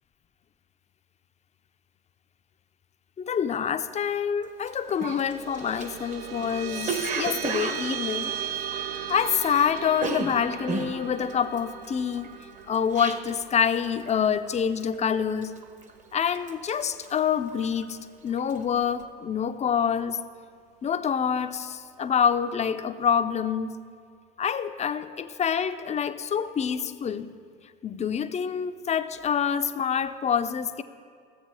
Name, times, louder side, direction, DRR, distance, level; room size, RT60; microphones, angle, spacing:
voice 1, 3.2-8.4 9.1-12.3 12.7-15.5 16.1-18.0 18.2-20.2 20.8-23.8 24.4-27.3 27.8-30.8, left 7 dB, 25° left, 10 dB, 0.6 m, -26 dB
Cough, 4.6-4.7 5.0-9.5 9.7-13.5 13.8-14.2 14.5-14.9 15.4-16.0 16.3-18.0 18.3-18.6, right 4 dB, 25° right, 0.9 m, -34 dB
sound 1, 4.8-15.6, right 9 dB, 85° right, 0.7 m, -37 dB
14.0 x 7.9 x 4.8 m, 2.1 s
hypercardioid pair, 70°, 29 cm